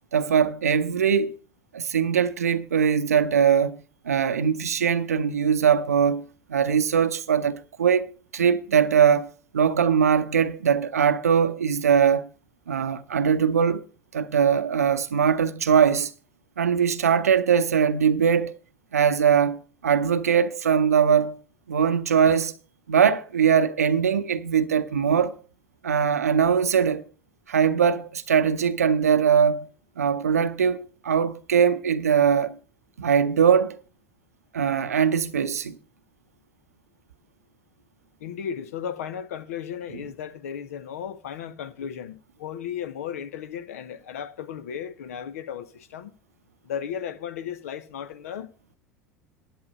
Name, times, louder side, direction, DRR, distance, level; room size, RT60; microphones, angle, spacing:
voice 1, 0.1-1.4 1.7-3.8 4.0-6.2 6.5-9.3 9.5-12.3 12.7-13.8 14.1-16.1 16.6-18.6 18.9-21.4 21.7-22.5 22.9-25.4 25.8-27.0 27.5-29.7 30.0-32.6 33.0-33.8 34.5-35.8, right 7 dB, 80° right, 0.6 m, -21 dB
voice 2, 38.2-46.1 46.6-48.8, left 8 dB, 70° left, 1.0 m, -35 dB
11.0 x 7.4 x 5.5 m
figure-of-eight pair, 75°, 8 cm